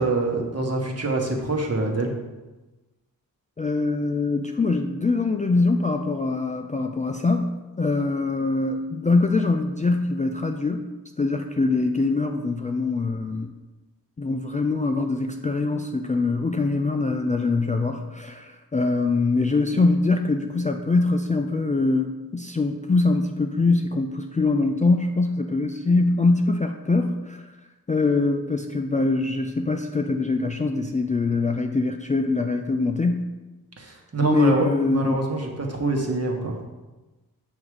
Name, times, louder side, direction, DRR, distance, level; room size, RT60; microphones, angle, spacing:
voice 1, 0.0-2.1 33.8-36.6, right 2 dB, 40° right, 0 dB, 1.3 m, -25 dB
voice 2, 3.6-10.9 11.2-13.5 14.2-27.5 27.9-33.3 34.2-35.2, left 3 dB, 20° left, 4 dB, 0.4 m, -23 dB
6.3 x 3.6 x 4.8 m, 1.1 s
cardioid pair, 45°, 37 cm